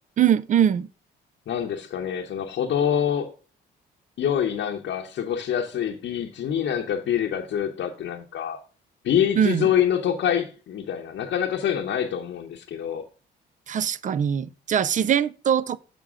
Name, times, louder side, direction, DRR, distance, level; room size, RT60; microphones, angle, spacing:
voice 1, 0.2-0.9 9.4-9.7 13.7-15.8, right 9 dB, 40° right, 0.4 m, -22 dB
voice 2, 1.5-3.3 4.2-8.6 9.0-13.0, left 9 dB, 65° left, 0.8 m, -26 dB
6.7 x 6.1 x 3.6 m
cardioid pair, 90°, 20 cm